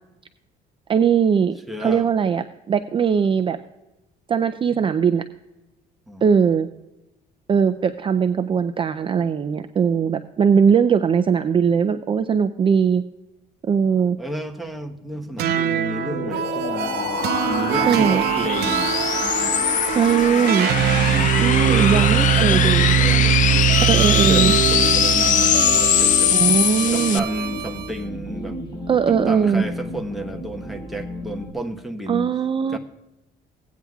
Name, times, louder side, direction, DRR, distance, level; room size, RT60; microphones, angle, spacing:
voice 1, 0.9-3.6 4.3-5.3 6.2-6.7 7.5-13.0 13.7-14.2 17.9-18.2 19.9-20.7 21.4-23.0 23.8-24.5 26.3-27.2 28.9-29.6 32.1-32.8, right 7 dB, 30° right, 9 dB, 0.4 m, -20 dB
voice 2, 1.7-2.1 6.1-6.3 14.2-17.1 17.4-18.9 21.7-23.8 24.1-26.3 26.9-28.6 29.1-32.3 32.7-32.8, right 1 dB, ahead, 2 dB, 1.1 m, -31 dB
sound 1, 15.4-27.2, left 10 dB, 50° left, 0.4 m, -22 dB
sound 2, 15.4-27.9, right 12 dB, 70° right, 0.6 m, -22 dB
sound 3, 16.7-31.5, equal, 25° left, 4.3 m, -33 dB
17.0 x 9.3 x 2.4 m, 0.97 s
cardioid pair, 110°, 17 cm